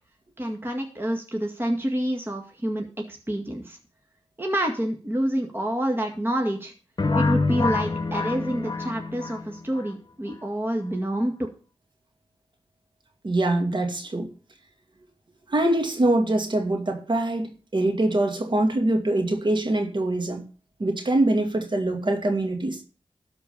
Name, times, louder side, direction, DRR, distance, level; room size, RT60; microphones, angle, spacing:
voice 1, 0.4-3.8 4.4-6.7 7.1-11.5, right 1 dB, 20° right, 1.9 m, -28 dB
sound 1, 7.0-9.9, left 3 dB, 40° left, 1.3 m, -26 dB
voice 2, 13.2-14.3 15.5-20.4 20.8-22.8, right 1 dB, 50° right, 2.4 m, -24 dB
12.5 x 4.6 x 6.9 m
cardioid pair, 50°, 10 cm